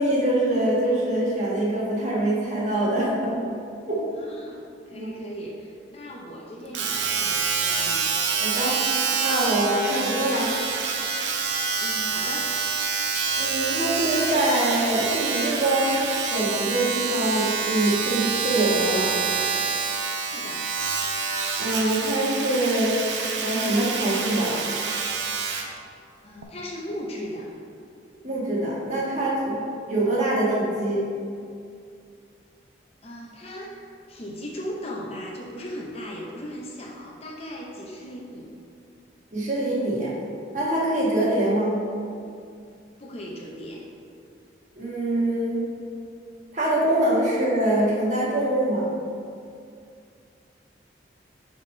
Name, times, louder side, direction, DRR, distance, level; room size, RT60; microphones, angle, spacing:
voice 1, 0.0-3.4 3.9-4.0 4.9-5.1 8.4-8.8 9.2-10.5 13.4-16.0 16.3-19.1 21.6-23.0 23.4-24.5 28.2-29.6 29.9-31.0 39.3-40.1 40.5-41.8 44.8-45.6 46.5-48.9, right 1 dB, 40° right, -5 dB, 1.4 m, -24 dB
voice 2, 4.2-8.1 11.8-12.6 20.3-20.7 26.2-27.5 33.0-38.5 43.0-43.9, equal, 35° left, -1 dB, 0.6 m, -37 dB
Domestic sounds home sounds, 6.7-25.7 26.4-26.5, right 5 dB, 80° right, 0.6 m, -27 dB
6.5 x 3.5 x 5.3 m, 2.4 s
head